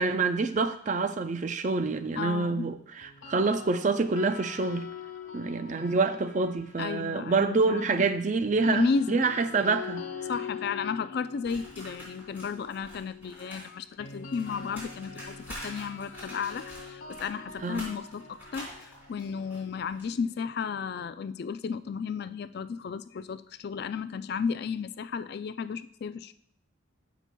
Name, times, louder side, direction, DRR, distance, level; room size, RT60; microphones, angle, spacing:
voice 1, 0.0-4.8 5.3-10.0 17.6-17.8, right 4 dB, 40° right, 10 dB, 0.4 m, -27 dB
voice 2, 2.2-2.7 6.8-8.0 8.7-9.2 10.2-15.4 15.6-26.3, left 5 dB, 50° left, 13 dB, 0.3 m, -33 dB
sound 1, 3.0-7.2 8.4-20.3, left 6 dB, 85° left, 1.0 m, -44 dB
sound 2, 11.4-13.7 13.9-20.1, equal, 10° right, 3.8 m, -46 dB
15.0 x 6.0 x 2.2 m, 0.66 s
head